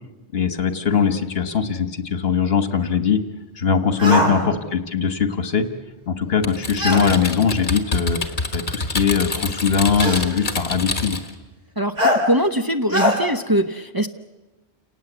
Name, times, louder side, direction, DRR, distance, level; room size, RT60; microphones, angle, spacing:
voice 1, 0.3-3.2 3.6-5.7 6.1-8.2 8.5-11.2, left 6 dB, 60° left, 9 dB, 1.6 m, -21 dB
sound 1, 4.0-4.3 6.8-7.1 8.3-8.4 10.0-10.3 12.0-12.2 12.9-13.2, left 1 dB, 40° right, 3.8 m, -20 dB
voice 2, 4.2-4.6 11.8-14.1, right 1 dB, 20° right, 5 dB, 0.9 m, -22 dB
Typing, 6.4-11.3, left 3 dB, 45° left, 1.9 m, -27 dB
29.5 x 18.5 x 8.1 m, 1.1 s
omnidirectional pair, 1.1 m